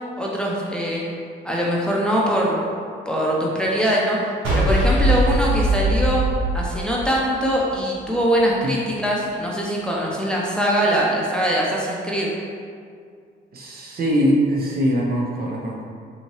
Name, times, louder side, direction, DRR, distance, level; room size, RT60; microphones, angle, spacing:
voice 1, 0.2-1.0 1.4-2.7 3.1-6.2 6.5-12.3, equal, 5° left, -4 dB, 0.6 m, -22 dB
sound 1, 4.4-7.7, right 1 dB, 90° right, 0.9 m, -20 dB
voice 2, 13.5-15.8, equal, 50° right, -2 dB, 0.7 m, -22 dB
4.1 x 2.7 x 3.1 m, 2.2 s
cardioid pair, 90°, 20 cm